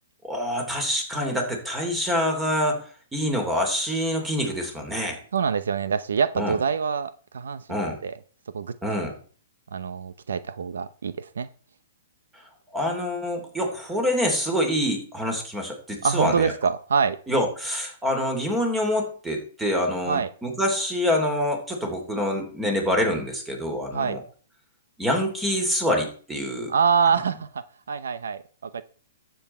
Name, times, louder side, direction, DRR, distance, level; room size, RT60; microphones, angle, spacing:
voice 1, 0.2-2.8 3.1-5.2 6.4-6.5 7.7-8.0 8.8-9.1 12.7-16.5 17.3-24.2 25.0-26.7, equal, 10° right, 4 dB, 3.1 m, -26 dB
voice 2, 5.3-8.2 8.5-8.7 9.7-11.5 16.0-17.2 20.1-20.3 23.9-24.2 26.7-28.8, right 6 dB, 85° right, 15 dB, 0.7 m, -25 dB
12.0 x 8.0 x 4.4 m, 0.43 s
hypercardioid pair, 145°, 0 cm